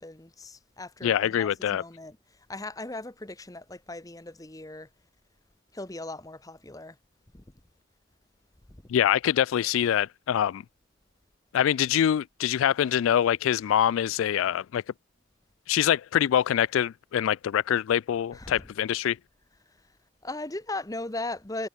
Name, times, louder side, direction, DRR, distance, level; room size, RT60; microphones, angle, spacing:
voice 1, 0.0-2.2 2.5-4.9 5.7-7.0 7.3-7.4 18.3-18.7 20.2-21.7, left 2 dB, 15° left, 0.9 m, -38 dB
voice 2, 1.0-1.8 8.9-10.6 11.5-14.8 15.7-19.2, left 10 dB, 75° left, 0.3 m, -24 dB
head